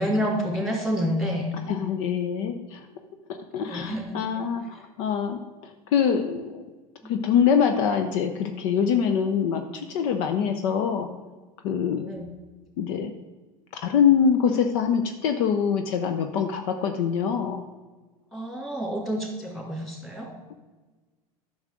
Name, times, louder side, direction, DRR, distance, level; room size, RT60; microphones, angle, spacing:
voice 1, 0.0-1.5 3.6-4.2 7.0-7.1 12.0-12.3 18.3-20.3, equal, ahead, 0 dB, 2.7 m, -28 dB
voice 2, 1.7-2.9 3.5-4.6 5.0-5.4 5.9-6.6 7.1-11.1 11.6-12.1 12.8-13.1 13.7-17.6, left 7 dB, 55° left, 7 dB, 0.7 m, -24 dB
10.5 x 6.4 x 3.7 m, 1.3 s
figure-of-eight pair, 80°, 19 cm